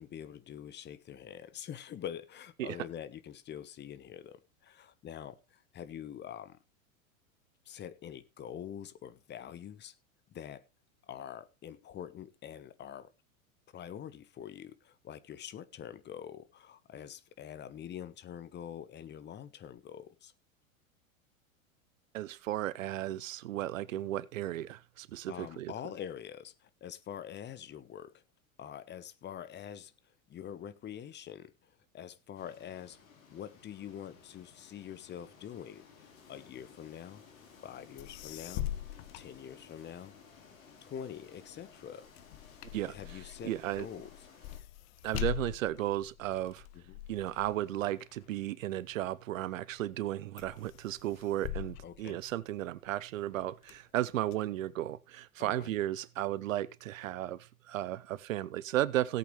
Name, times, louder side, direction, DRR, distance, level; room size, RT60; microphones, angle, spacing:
voice 1, 0.0-6.6 7.6-10.0 10.3-10.6 11.1-13.1 13.7-20.3 25.3-28.2 28.6-29.9 30.3-33.0 33.3-37.2 37.6-38.7 39.1-40.2 40.8-42.1 42.8-44.1 46.7-47.0 51.8-52.2 55.4-55.7, left 9 dB, 25° left, 1.1 m, -45 dB
voice 2, 22.1-25.7 42.7-42.9 43.4-43.9 45.0-46.7 47.1-59.2, right 13 dB, 65° right, 0.8 m, -34 dB
sound 1, 32.4-44.6, left 6 dB, 70° left, 4.0 m, -57 dB
sound 2, 38.0-40.1 40.5-49.2 49.7-50.1 50.4-52.9 53.3-54.3, left 13 dB, 50° left, 1.1 m, -43 dB
17.5 x 8.3 x 3.2 m
hypercardioid pair, 95°, 42 cm